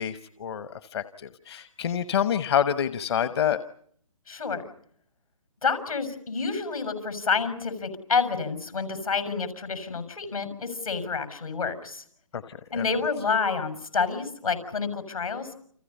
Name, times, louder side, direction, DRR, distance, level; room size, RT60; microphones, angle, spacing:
voice 1, 0.0-3.6 12.3-12.8, left 9 dB, 50° left, 12 dB, 1.1 m, -27 dB
voice 2, 4.3-4.6 5.6-12.0 12.7-15.5, left 5 dB, 80° left, 10 dB, 6.7 m, -28 dB
29.5 x 28.5 x 5.5 m, 0.63 s
figure-of-eight pair, 135°, 18 cm